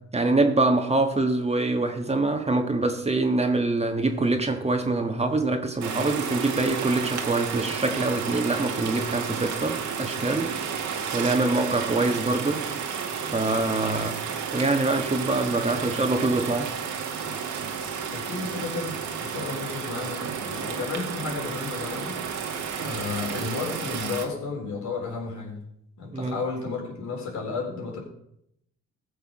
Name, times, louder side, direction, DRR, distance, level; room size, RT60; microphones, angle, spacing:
voice 1, 0.1-10.5 11.1-12.6 13.2-14.2 14.5-16.7 22.8-22.9 26.1-26.3, right 2 dB, 20° right, 5 dB, 1.4 m, -24 dB
sound 1, 5.8-24.3, right 6 dB, 75° right, 1.9 m, -32 dB
voice 2, 18.1-22.2 22.8-25.6 26.0-28.0, left 4 dB, 65° left, 0 dB, 4.0 m, -33 dB
15.0 x 6.8 x 5.3 m, 0.77 s
cardioid pair, 90°, 30 cm